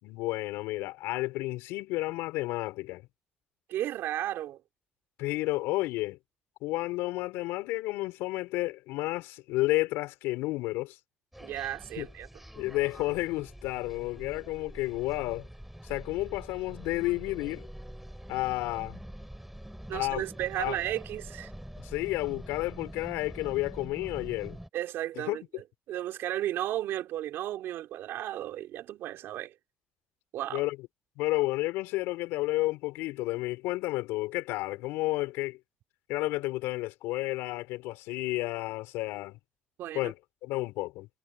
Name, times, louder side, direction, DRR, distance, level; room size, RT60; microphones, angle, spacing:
voice 1, 0.0-3.0 5.2-6.2 6.6-11.0 12.0-12.1 12.6-15.5 15.8-17.7 18.3-19.0 19.9-20.2 20.6-20.8 21.8-24.6 25.2-25.5 30.5-30.8 31.2-35.6 36.1-39.4 40.0-40.1 40.4-41.1, left 19 dB, 85° left, 5.2 m, -31 dB
voice 2, 3.7-4.6 11.4-12.3 19.9-21.5 24.7-29.5 30.3-30.6 39.8-40.1, right 13 dB, 80° right, 3.8 m, -34 dB
sound 1, 11.3-24.7, equal, 5° right, 6.7 m, -45 dB
hypercardioid pair, 50°, 4 cm